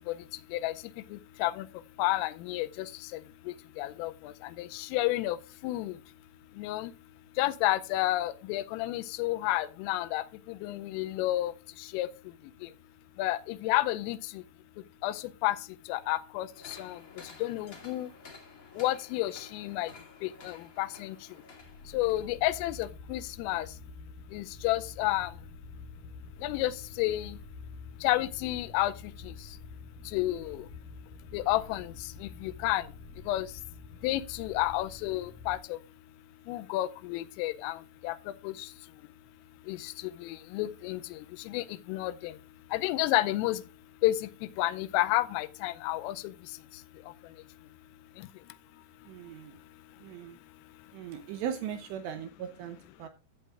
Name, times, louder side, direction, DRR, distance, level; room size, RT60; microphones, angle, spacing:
voice 1, 1.1-1.7 2.0-2.9 3.1-3.2 3.8-4.3 4.6-5.4 5.6-5.9 6.6-6.9 7.4-11.5 11.9-12.1 13.2-14.2 15.0-15.6 15.9-17.0 17.4-18.1 18.8-19.9 20.2-21.2 21.9-23.7 24.3-25.3 26.4-27.4 28.0-28.9 29.3-29.4 30.1-30.6 31.3-31.9 32.2-32.8 33.3-33.5 34.0-35.8 36.5-37.8 38.0-38.2 38.4-38.5 39.7-39.9 40.2-41.2 41.5-42.3 42.7-43.6 44.0-44.3 44.6-46.2, left 16 dB, 90° left, 3.2 m, -30 dB
sound 1, 16.5-22.8 23.2-23.3, left 3 dB, 50° left, 1.0 m, -52 dB
sound 2, 21.6-35.6, left 4 dB, 65° left, 2.2 m, -48 dB
voice 2, 49.1-49.6 50.0-50.4 50.9-53.1, right 9 dB, 80° right, 2.5 m, -38 dB
13.5 x 9.2 x 2.4 m
omnidirectional pair, 5.8 m